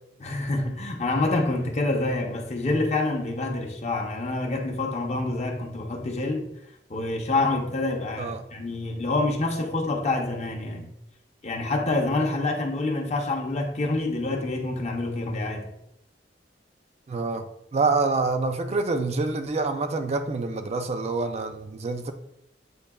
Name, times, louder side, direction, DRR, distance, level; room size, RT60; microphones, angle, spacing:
voice 1, 0.2-6.5 6.9-10.9 11.4-15.7, left 2 dB, 40° left, 0.6 m, -27 dB
voice 2, 17.1-17.4 17.7-22.1, right 3 dB, 35° right, 0.4 m, -26 dB
7.9 x 2.7 x 2.2 m
head